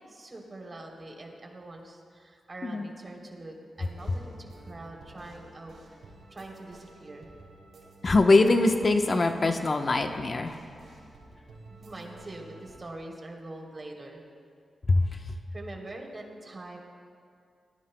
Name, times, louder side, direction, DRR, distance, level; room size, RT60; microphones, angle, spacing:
voice 1, 0.1-7.3 11.7-14.2 15.1-16.8, right 2 dB, 40° right, 0 dB, 3.2 m, -44 dB
sound 1, 3.8-12.8, right 2 dB, 75° right, 4.5 m, -52 dB
voice 2, 8.0-10.6 14.9-15.1, left 2 dB, 45° left, 5 dB, 0.9 m, -22 dB
26.5 x 18.5 x 2.2 m, 2.2 s
cardioid pair, 55°, 0 cm